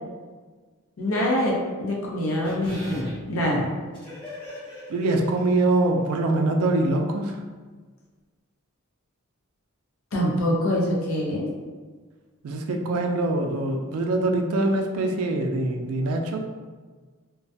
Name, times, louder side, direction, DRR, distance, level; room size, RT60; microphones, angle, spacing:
voice 1, 1.0-3.7 10.1-11.5, left 1 dB, 65° left, -3 dB, 0.6 m, -25 dB
sound 1, 2.4-5.9 6.2-6.3, equal, 20° left, 0.8 m, -41 dB
voice 2, 4.9-7.4 12.4-16.4, right 2 dB, 75° right, 3 dB, 0.3 m, -24 dB
2.3 x 2.1 x 2.6 m, 1.4 s
head